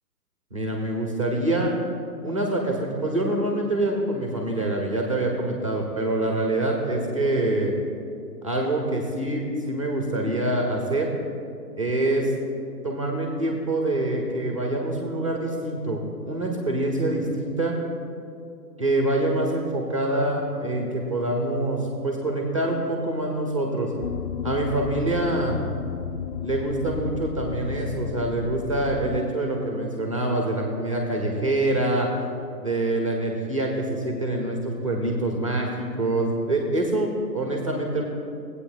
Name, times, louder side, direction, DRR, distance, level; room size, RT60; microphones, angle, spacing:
voice 1, 0.5-1.7 2.2-7.7 8.4-11.1 11.8-12.3 12.8-17.7 18.8-23.9 24.4-25.6 26.4-32.1 32.6-38.0, right 1 dB, 20° right, 1 dB, 0.5 m, -25 dB
sound 1, 24.0-29.2, left 8 dB, 80° left, 0.6 m, -33 dB
17.5 x 8.3 x 2.4 m, 2.5 s
figure-of-eight pair, 135°, 50 cm